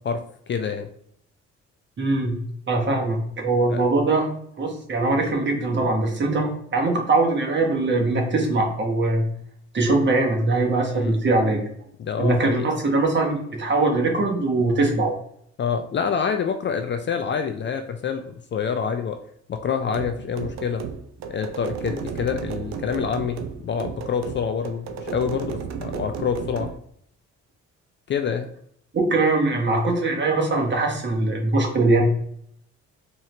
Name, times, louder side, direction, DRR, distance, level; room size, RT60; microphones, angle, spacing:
voice 1, 0.5-0.9 3.7-3.8 10.9-11.2 12.0-12.7 15.6-19.2 19.5-20.9 21.3-26.7 28.1-28.5, left 6 dB, 40° left, 7 dB, 0.4 m, -27 dB
voice 2, 2.0-2.4 2.7-4.3 4.6-9.2 9.7-11.6 12.2-15.1 29.1-32.0, right 2 dB, 40° right, 0 dB, 1.2 m, -22 dB
sound 1, 19.9-26.8, right 7 dB, 65° right, 0.6 m, -33 dB
3.7 x 3.0 x 3.2 m, 0.65 s
cardioid pair, 90°, 30 cm